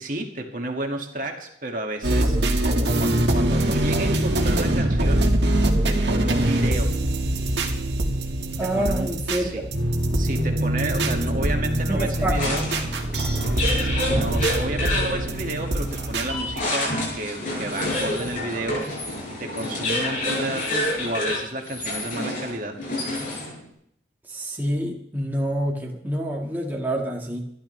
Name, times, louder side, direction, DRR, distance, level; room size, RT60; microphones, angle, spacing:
voice 1, 0.0-2.4 2.7-6.9 8.7-9.6 10.2-12.6 13.8-18.8 19.4-22.8, right 1 dB, 45° right, 2 dB, 2.0 m, -31 dB
sound 1, 2.0-16.6, right 1 dB, 75° right, 1.8 m, -23 dB
voice 2, 8.6-9.6 11.9-12.4 24.3-27.5, right 1 dB, 10° right, -1 dB, 1.8 m, -27 dB
sound 2, 12.3-23.6, left 1 dB, 45° left, 6.6 m, -28 dB
25.5 x 11.5 x 3.3 m, 0.72 s
head